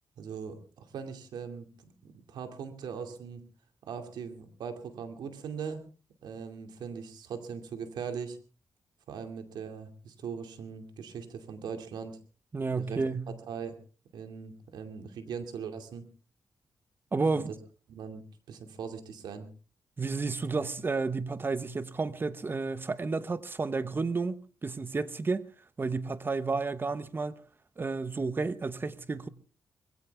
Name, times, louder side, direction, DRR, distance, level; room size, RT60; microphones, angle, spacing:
voice 1, 0.2-3.4 3.8-5.8 6.2-8.4 9.1-12.2 12.7-13.8 14.1-16.0 17.4-17.5 17.9-19.5, right 6 dB, 85° right, 2.4 m, -40 dB
voice 2, 12.5-13.3 17.1-17.5 20.0-25.5 25.8-27.4 27.8-29.3, right 4 dB, 30° right, 1.1 m, -31 dB
21.0 x 16.0 x 3.5 m
cardioid pair, 95°, 7 cm